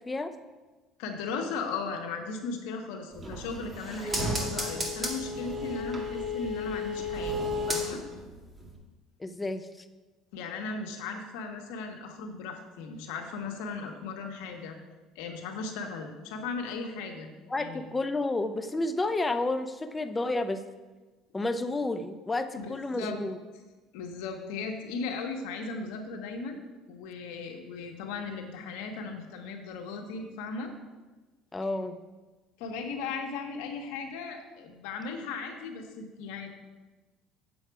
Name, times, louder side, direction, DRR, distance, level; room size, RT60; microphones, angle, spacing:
voice 1, 1.0-8.0 10.3-14.8 15.1-17.3 17.6-17.8 22.6-22.7 22.9-23.2 23.9-26.6 26.9-30.7 32.6-36.5, left 4 dB, 85° left, 3 dB, 1.4 m, -37 dB
sound 1, 3.1-8.3 8.6-8.7, left 1 dB, 25° right, 2.0 m, -33 dB
voice 2, 9.2-9.7 17.5-20.6 21.3-23.4 31.5-32.0, left 2 dB, 15° left, 10 dB, 0.6 m, -30 dB
8.6 x 7.2 x 4.8 m, 1.2 s
supercardioid pair, 105°, 0 cm